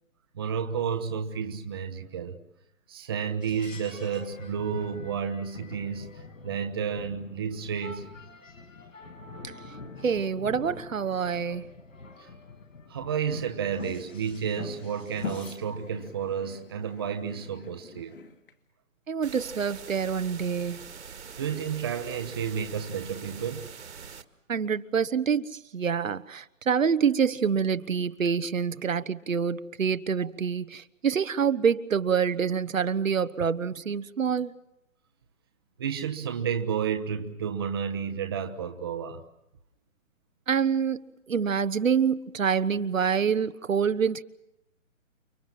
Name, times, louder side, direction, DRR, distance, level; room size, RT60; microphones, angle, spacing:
voice 1, 0.3-2.4 2.9-6.1 6.4-8.1 12.9-18.2 21.4-23.7 35.8-39.2, right 7 dB, 20° right, 1.1 m, -31 dB
sound 1, 3.4-15.6, left 4 dB, 70° left, 6.1 m, -44 dB
voice 2, 10.0-11.7 19.1-20.9 24.5-34.6 40.5-44.2, right 6 dB, 75° right, 1.3 m, -26 dB
sound 2, 13.4-18.5, left 6 dB, 40° left, 2.8 m, -52 dB
sound 3, 19.2-24.2, right 6 dB, 55° right, 2.1 m, -44 dB
30.0 x 23.5 x 7.6 m
hypercardioid pair, 170°, 40 cm